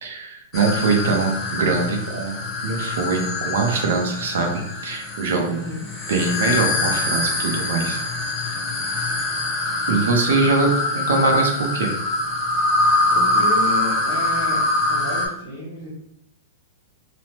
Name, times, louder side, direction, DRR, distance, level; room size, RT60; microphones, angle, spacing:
voice 1, 0.0-5.6 6.1-8.0 9.9-11.9, right 4 dB, 65° right, 2 dB, 0.6 m, -22 dB
sound 1, 0.5-15.3, left 2 dB, 15° left, 0.5 m, -24 dB
voice 2, 5.4-5.8 12.7-15.9, left 1 dB, 30° right, -12 dB, 1.5 m, -32 dB
3.0 x 2.0 x 2.9 m, 0.75 s
supercardioid pair, 180°, 0 cm